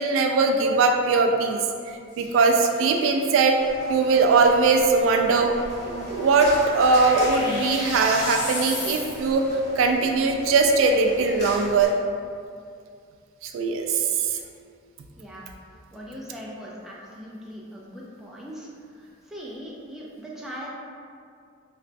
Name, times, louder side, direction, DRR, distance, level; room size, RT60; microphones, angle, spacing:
voice 1, 0.0-1.6 2.2-3.6 3.9-9.5 9.8-11.9 13.4-14.4, right 4 dB, 90° right, 3 dB, 0.3 m, -20 dB
sound 1, 2.1-9.5, left 1 dB, 65° left, 0.8 m, -37 dB
sound 2, 3.6-11.9, left 1 dB, 35° left, 0.6 m, -41 dB
voice 2, 15.2-15.5 15.9-20.7, equal, ahead, -5 dB, 0.3 m, -40 dB
3.9 x 2.2 x 2.5 m, 2.3 s
head